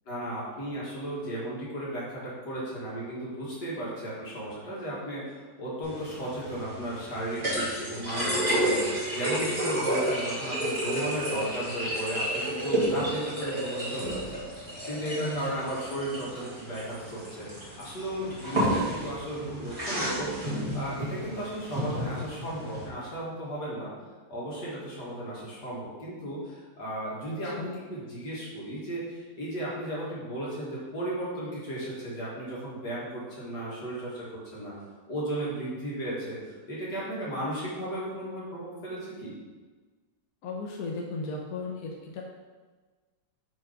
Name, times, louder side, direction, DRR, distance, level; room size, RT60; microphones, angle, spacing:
voice 1, 0.1-14.4 14.9-23.9 24.3-34.7 35.1-39.3, right 1 dB, 80° left, -6 dB, 2.4 m, -35 dB
sound 1, 5.8-22.9, right 1 dB, 20° right, 2.2 m, -31 dB
voice 2, 15.2-15.5 27.3-27.7 40.4-42.2, left 3 dB, 65° left, 0 dB, 1.1 m, -35 dB
5.3 x 4.6 x 5.0 m, 1.4 s
omnidirectional pair, 1.8 m